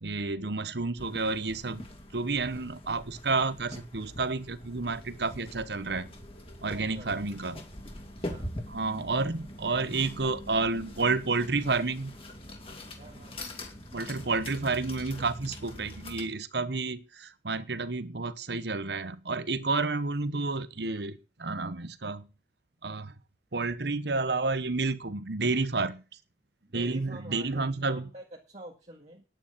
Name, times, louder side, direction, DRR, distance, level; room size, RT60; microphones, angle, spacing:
voice 1, 0.0-1.9 2.1-6.1 6.6-7.6 8.7-12.2 13.9-22.3 22.8-23.1 23.5-26.0 26.7-28.1, right 3 dB, 65° right, 1.0 m, -30 dB
sound 1, 1.0-16.2, left 1 dB, 30° left, 2.8 m, -43 dB
voice 2, 6.8-7.1 8.2-8.5 13.0-13.6 25.8-25.9 26.6-29.2, right 1 dB, 40° right, 1.8 m, -48 dB
10.5 x 9.1 x 7.2 m
head